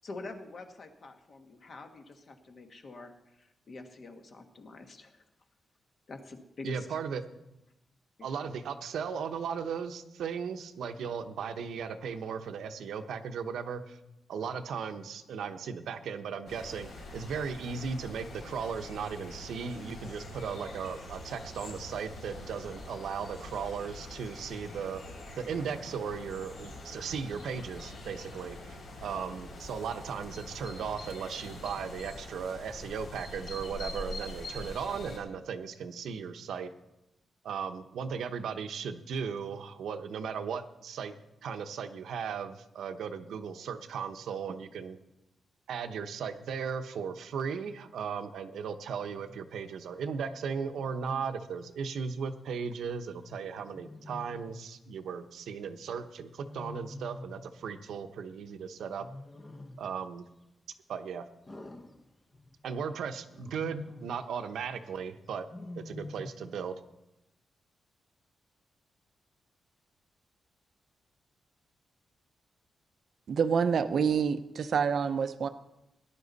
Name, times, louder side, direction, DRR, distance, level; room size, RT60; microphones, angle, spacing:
voice 1, 0.0-5.2 6.1-7.0 8.2-8.3, left 3 dB, 45° left, 5 dB, 1.4 m, -46 dB
voice 2, 6.6-7.2 8.2-14.0 14.3-25.0 25.4-36.7 37.4-41.1 41.4-45.0 45.7-59.1 59.8-60.2 60.9-61.3 62.6-65.5 65.8-66.8, right 6 dB, 85° right, 8 dB, 0.9 m, -37 dB
sound 1, 16.5-35.2, left 1 dB, 75° left, 5.7 m, -44 dB
Wild animals, 49.1-49.5 50.7-51.4 53.7-54.6 56.4-57.5 59.0-59.9 61.5-62.6 63.3-64.2 65.5-66.5, left 2 dB, 20° left, 0.9 m, -46 dB
voice 3, 73.3-75.5, right 6 dB, 55° right, 11 dB, 0.6 m, -27 dB
18.5 x 11.0 x 4.1 m, 0.90 s
wide cardioid pair, 160°, 0 cm